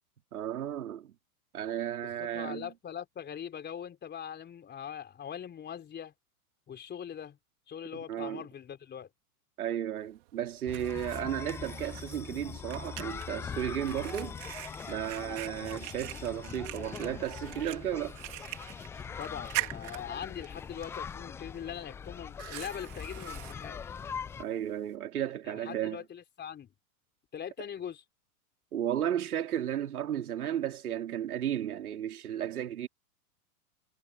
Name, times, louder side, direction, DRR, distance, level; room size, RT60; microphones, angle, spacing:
voice 1, 0.3-1.1 1.5-2.7 7.9-8.4 9.6-14.4 14.8-18.2 24.4-26.0 28.7-32.9, right 10 dB, 75° right, 3.4 m, -34 dB
voice 2, 2.0-6.1 6.7-7.4 7.7-9.1 15.2-15.4 19.2-24.0 25.5-26.7 27.3-28.0, left 9 dB, 25° left, 3.9 m, -42 dB
Fire, 10.0-25.0, right 23 dB, 55° right, 3.8 m, -44 dB
sound 1, 10.7-24.4, left 7 dB, 5° left, 0.3 m, -42 dB
hypercardioid pair, 110°, 44 cm